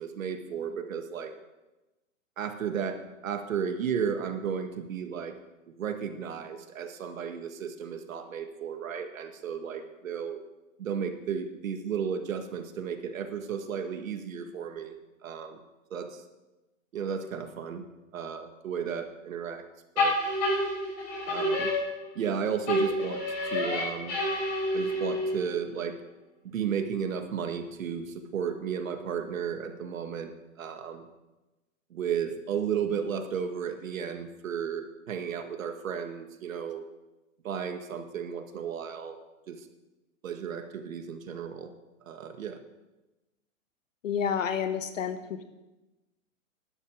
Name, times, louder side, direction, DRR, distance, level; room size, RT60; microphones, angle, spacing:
voice 1, 0.0-1.3 2.4-5.3 5.8-10.4 10.8-15.0 15.2-15.6 15.9-16.2 16.9-17.8 18.1-19.6 20.0-20.2 21.3-21.7 22.2-24.2 24.7-26.0 26.4-30.3 30.6-31.1 31.9-36.9 37.4-39.2 39.5-39.7 40.2-41.7 42.1-42.6, right 7 dB, 75° right, 6 dB, 1.9 m, -34 dB
sound 1, 20.0-22.3 22.7-25.5, left 1 dB, 35° left, 5.5 m, -28 dB
voice 2, 44.0-45.4, left 7 dB, 70° left, 9 dB, 1.6 m, -30 dB
14.5 x 11.5 x 5.0 m, 1.1 s
hypercardioid pair, 175°, 40 cm